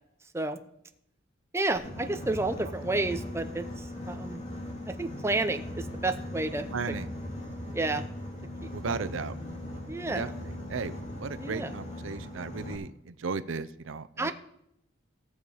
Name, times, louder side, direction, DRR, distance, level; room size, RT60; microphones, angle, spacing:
voice 1, 1.5-4.4 4.9-6.7 7.7-8.0 8.6-9.1 9.9-10.3 11.4-11.7 14.2-14.3, right 2 dB, 15° right, 8 dB, 0.7 m, -31 dB
Boat Water vehicle, 1.7-12.7, left 1 dB, 35° left, 2.3 m, -39 dB
voice 2, 6.7-7.1 8.7-9.4 10.1-10.9 11.2-14.3, right 4 dB, 90° right, 12 dB, 0.6 m, -35 dB
16.5 x 7.0 x 4.8 m, 0.76 s
head